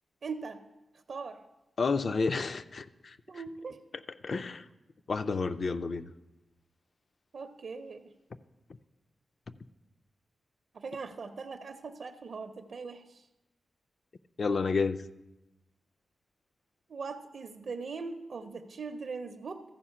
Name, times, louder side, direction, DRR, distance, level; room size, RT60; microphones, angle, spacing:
voice 1, 0.2-0.6 1.1-1.4 3.3-3.8 7.3-8.1 10.7-13.2 16.9-19.6, right 4 dB, 55° right, 0.5 m, -40 dB
voice 2, 1.8-3.2 4.2-4.6 5.1-6.1 14.4-15.0, left 4 dB, 45° left, 0.3 m, -30 dB
14.0 x 4.9 x 5.7 m
wide cardioid pair, 155°, 0 cm